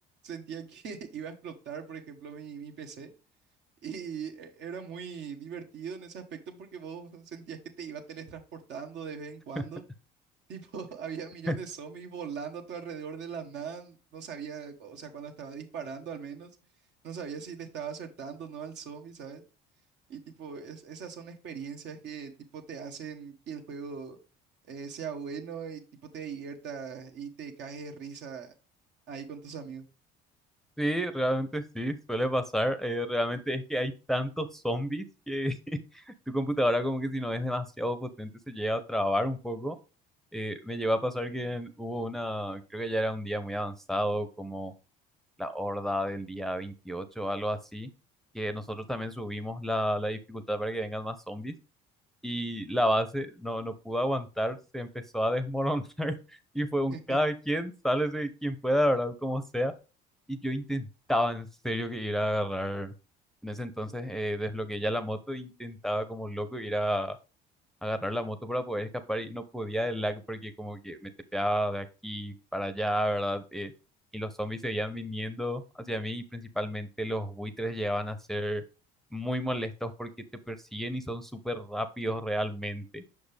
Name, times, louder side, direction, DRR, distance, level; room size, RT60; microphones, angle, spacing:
voice 1, 0.2-3.1 3.8-9.8 10.5-16.5 17.0-19.4 20.1-24.2 24.7-25.8 26.1-28.5 29.1-29.8 56.9-57.2, right 6 dB, 60° right, 4 dB, 1.3 m, -40 dB
voice 2, 30.8-39.8 40.3-44.7 45.4-47.9 48.3-51.5 52.2-54.9 55.1-59.7 60.3-62.9 63.4-67.2 67.8-73.7 74.1-78.6 79.1-80.1 80.5-83.0, equal, ahead, 8 dB, 0.7 m, -31 dB
5.9 x 5.2 x 3.3 m, 0.32 s
supercardioid pair, 80°, 20 cm